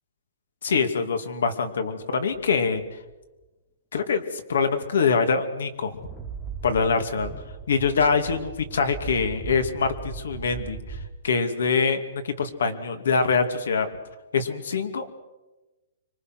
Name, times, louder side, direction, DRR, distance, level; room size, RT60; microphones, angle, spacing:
voice 1, 0.6-2.8 3.9-6.0 6.6-7.3 7.7-11.0 11.2-13.9 14.3-15.2, left 5 dB, 85° left, 8 dB, 2.6 m, -24 dB
sound 1, 2.3-2.9 5.0-5.1 5.6-11.1, right 5 dB, 5° left, 1.5 m, -38 dB
26.0 x 24.0 x 6.2 m, 1.1 s
hypercardioid pair, 175°, 0 cm